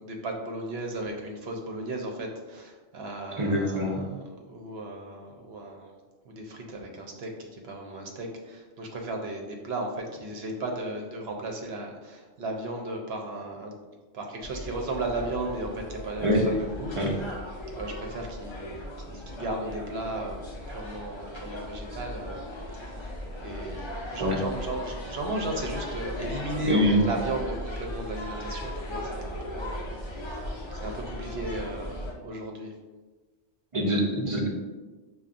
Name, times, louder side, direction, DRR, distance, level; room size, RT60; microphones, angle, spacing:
voice 1, 0.0-5.9 6.3-13.7 14.1-17.3 17.7-20.4 20.7-22.4 22.7-23.1 23.4-32.7, right 2 dB, 60° right, 2 dB, 0.8 m, -35 dB
voice 2, 3.4-4.0 16.2-16.5 17.0-17.1 24.2-24.4 26.7-27.0 33.7-34.5, equal, 40° right, -1 dB, 0.4 m, -24 dB
sound 1, 14.4-32.1, left 1 dB, 40° left, 0.4 m, -37 dB
6.7 x 2.3 x 2.5 m, 1.3 s
omnidirectional pair, 1.3 m